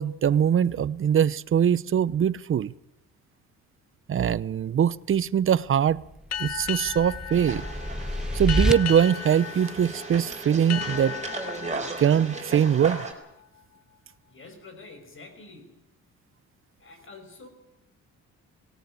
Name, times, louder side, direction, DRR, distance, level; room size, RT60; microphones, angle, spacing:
voice 1, 0.0-2.7 4.1-6.0 6.4-7.6 8.3-11.2 12.0-13.0, right 9 dB, 45° right, 0.7 m, -22 dB
sound 1, 6.0-8.7, equal, ahead, 1.0 m, -28 dB
sound 2, 6.3-13.6, left 9 dB, 60° left, 1.0 m, -37 dB
sound 3, 7.3-13.1, right 3 dB, 25° right, 4.9 m, -36 dB
voice 2, 14.3-16.0 16.8-17.5, left 3 dB, 40° left, 5.7 m, -47 dB
18.0 x 17.5 x 10.0 m
cardioid pair, 90°, 30 cm